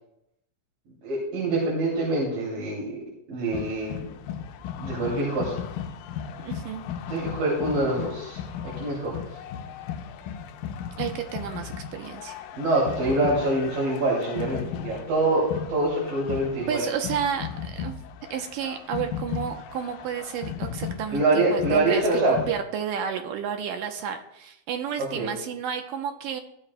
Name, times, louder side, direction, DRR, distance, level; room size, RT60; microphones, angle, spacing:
voice 1, 1.0-3.0 3.3-4.1 4.8-5.6 7.1-9.4 12.6-16.8 21.1-22.4 25.0-25.3, right 2 dB, 60° right, -5 dB, 4.2 m, -25 dB
sound 1, 3.5-22.6, left 8 dB, 80° left, 2.1 m, -36 dB
voice 2, 6.4-6.9 11.0-12.4 16.7-18.0 18.3-26.4, right 8 dB, 80° right, 5 dB, 2.1 m, -31 dB
15.5 x 12.0 x 2.2 m, 0.80 s
omnidirectional pair, 4.6 m